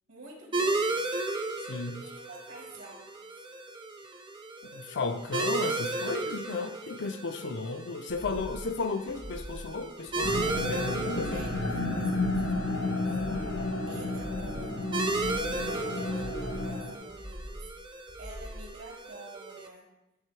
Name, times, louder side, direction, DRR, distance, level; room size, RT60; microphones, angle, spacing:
voice 1, 0.1-1.2 2.0-3.1 3.4-3.5 11.3-13.2 13.8-15.1 15.5-17.7 18.2-19.9, right 2 dB, 65° right, -1 dB, 1.5 m, -48 dB
sound 1, 0.5-19.7, right 2 dB, 25° right, 0.6 m, -35 dB
voice 2, 1.6-2.0 4.7-11.4, left 4 dB, 55° left, 8 dB, 0.5 m, -34 dB
sound 2, 8.1-8.7 9.1-9.7 10.1-10.7 11.1-11.7 12.1-12.7 13.1-13.7 14.1-14.7 15.1-15.7 16.1-16.7 17.1-17.7 18.1-18.7, equal, 90° right, 2.8 m, -43 dB
sound 3, 10.2-16.9, left 2 dB, 75° left, 1.1 m, -32 dB
11.0 x 6.6 x 3.2 m, 0.94 s
head